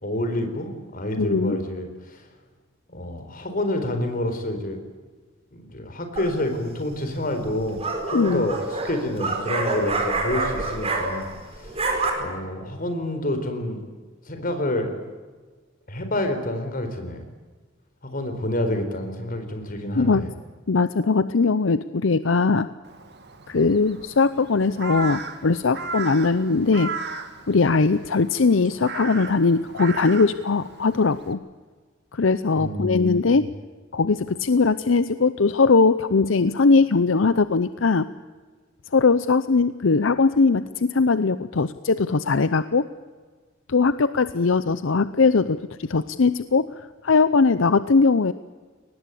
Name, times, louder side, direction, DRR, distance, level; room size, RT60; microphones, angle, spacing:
voice 1, 0.0-2.2 2.9-4.8 5.5-7.8 8.1-11.3 11.5-11.8 12.2-13.9 14.2-14.9 15.9-17.2 18.0-20.3 32.6-33.5, left 1 dB, 45° left, 7 dB, 4.2 m, -28 dB
voice 2, 1.2-1.6 8.1-8.4 20.0-20.3 20.7-22.7 23.5-26.9 27.5-31.4 32.1-33.5 33.9-38.1 38.9-42.9 43.7-46.7 47.0-48.3, left 4 dB, 75° left, 14 dB, 0.7 m, -20 dB
sound 1, 6.2-6.6 7.5-11.4 11.6-12.1, right 2 dB, 30° right, 4.7 m, -27 dB
Crow, 22.8-31.3, right 4 dB, 60° right, 2.2 m, -36 dB
23.0 x 19.5 x 8.4 m, 1.4 s
head